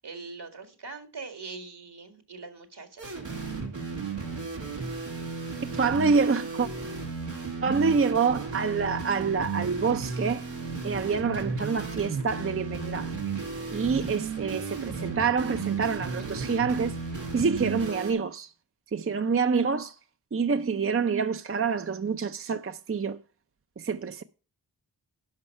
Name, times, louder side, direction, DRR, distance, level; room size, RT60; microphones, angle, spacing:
voice 1, 0.0-3.2, right 4 dB, 65° right, 2.0 m, -42 dB
sound 1, 3.0-18.1, right 4 dB, 90° right, 2.3 m, -34 dB
voice 2, 5.7-6.7 7.6-10.5 10.8-13.1 13.7-17.0 17.3-18.5 18.9-19.9 20.3-23.2 23.8-24.2, right 5 dB, 30° right, 0.6 m, -27 dB
11.0 x 5.5 x 5.5 m
cardioid pair, 45°, 43 cm